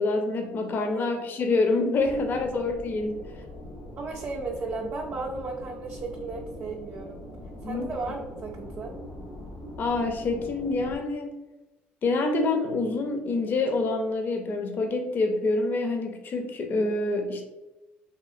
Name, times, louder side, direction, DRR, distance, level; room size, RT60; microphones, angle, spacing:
voice 1, 0.0-3.2 7.6-7.9 9.8-11.3 12.0-17.5, left 3 dB, 45° left, 3 dB, 0.5 m, -26 dB
sound 1, 2.0-11.0, left 1 dB, 85° left, 1.0 m, -42 dB
voice 2, 4.0-7.2 7.6-8.9, right 3 dB, 45° right, -1 dB, 0.4 m, -35 dB
2.8 x 2.7 x 2.5 m, 1.0 s
supercardioid pair, 85°, 5 cm